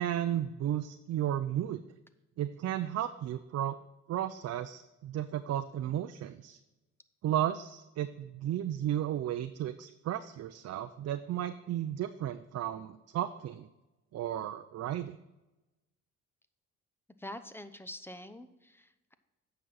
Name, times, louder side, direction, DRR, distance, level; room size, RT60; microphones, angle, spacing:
voice 1, 0.0-1.8 2.4-3.8 4.1-6.6 7.2-13.7 14.1-15.2, right 11 dB, 55° right, 10 dB, 0.5 m, -34 dB
voice 2, 17.2-19.1, left 1 dB, 10° left, 11 dB, 0.7 m, -45 dB
9.2 x 6.1 x 4.0 m, 1.0 s
cardioid pair, 90°, 30 cm